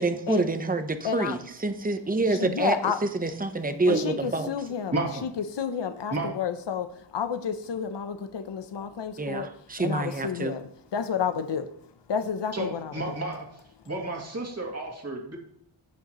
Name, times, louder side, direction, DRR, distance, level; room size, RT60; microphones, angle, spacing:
voice 1, 0.0-2.8 3.0-4.5 9.2-10.5, right 3 dB, 20° right, 8 dB, 0.9 m, -27 dB
voice 2, 1.0-1.4 2.4-3.0 3.9-5.0 5.5-9.5 9.8-11.7 12.1-12.9, left 7 dB, 70° left, 10 dB, 0.8 m, -30 dB
voice 3, 4.9-5.2 6.1-6.3 12.5-13.5 13.9-15.4, right 2 dB, 35° right, 0 dB, 2.3 m, -31 dB
16.5 x 6.4 x 3.0 m, 0.68 s
wide cardioid pair, 70°, 44 cm